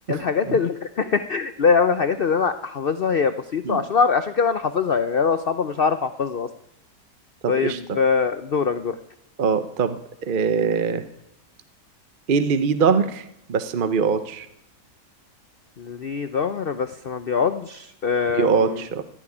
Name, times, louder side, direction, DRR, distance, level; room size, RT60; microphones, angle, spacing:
voice 1, 0.1-6.5 7.5-9.0 15.8-18.8, left 5 dB, 90° left, 11 dB, 0.5 m, -23 dB
voice 2, 7.4-7.8 9.4-11.0 12.3-14.5 18.3-19.0, right 6 dB, 50° right, 11 dB, 0.6 m, -22 dB
14.5 x 7.0 x 9.8 m, 0.80 s
omnidirectional pair, 1.9 m